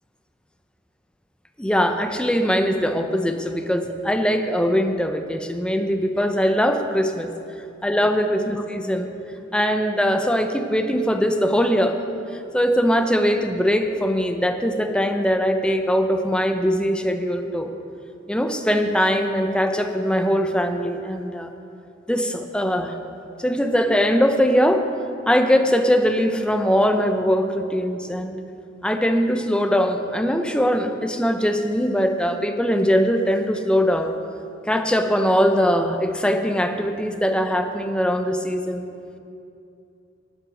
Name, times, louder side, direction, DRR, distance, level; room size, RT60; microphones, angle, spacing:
voice 1, 1.6-7.3 7.8-9.1 9.5-12.0 12.5-17.7 18.3-21.5 22.1-22.9 23.4-24.9 25.3-28.4 28.8-34.1 34.7-38.9, equal, 5° left, 6 dB, 0.6 m, -21 dB
9.6 x 9.1 x 6.3 m, 2.7 s
head